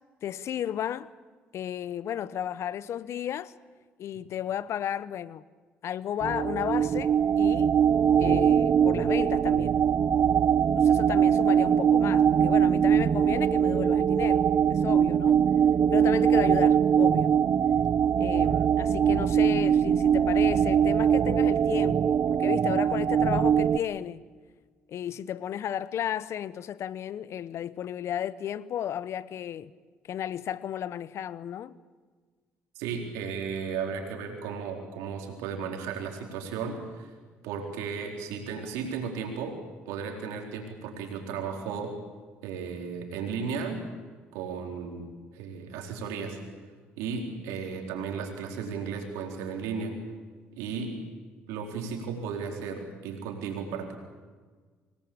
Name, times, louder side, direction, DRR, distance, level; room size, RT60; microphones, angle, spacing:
voice 1, 0.2-1.1 1.5-3.5 4.0-5.4 5.8-7.8 8.2-9.8 10.8-15.4 15.9-17.3 18.2-24.2 24.9-29.7 30.1-31.8, left 10 dB, 65° left, 0.9 m, -33 dB
sound 1, 6.2-23.8, right 8 dB, 55° right, 0.8 m, -22 dB
voice 2, 32.8-37.1 37.4-39.6 39.9-41.9 42.4-43.9 44.3-45.1 45.3-46.4 47.0-50.0 50.5-51.0 51.5-54.0, right 6 dB, 80° right, 4.3 m, -35 dB
26.5 x 19.5 x 8.7 m
hypercardioid pair, 60°, 5 cm